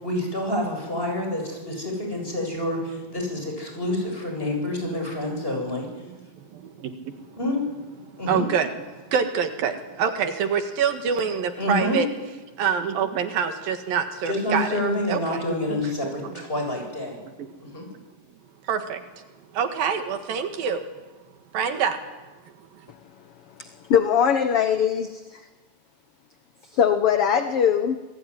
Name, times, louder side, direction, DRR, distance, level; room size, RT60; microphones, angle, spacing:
voice 1, 0.0-5.9 7.4-7.6 8.2-8.4 11.6-12.0 14.2-17.2 17.6-17.9, left 1 dB, 15° left, 2 dB, 8.0 m, -28 dB
voice 2, 5.8-7.2 8.3-12.1 12.6-14.8 15.1-15.4 15.7-16.3 17.4-17.5 18.7-19.0 19.5-20.9 21.5-22.0, right 7 dB, 75° right, 7 dB, 3.5 m, -26 dB
voice 3, 23.6-25.4 26.7-28.0, left 8 dB, 65° left, 8 dB, 1.5 m, -21 dB
28.0 x 20.5 x 10.0 m, 1.2 s
omnidirectional pair, 4.1 m